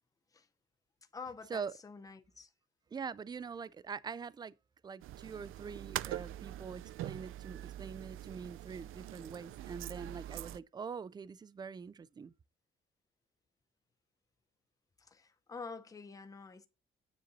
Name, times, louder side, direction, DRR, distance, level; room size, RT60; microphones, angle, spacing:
voice 1, 1.1-2.5 15.0-16.7, left 4 dB, 15° left, 0.8 m, -48 dB
voice 2, 2.9-4.5 4.8-12.3, right 6 dB, 20° right, 0.4 m, -44 dB
sound 1, 5.0-10.6, right 14 dB, 90° right, 0.5 m, -43 dB
9.4 x 6.9 x 4.0 m
cardioid pair, 165°, 20 cm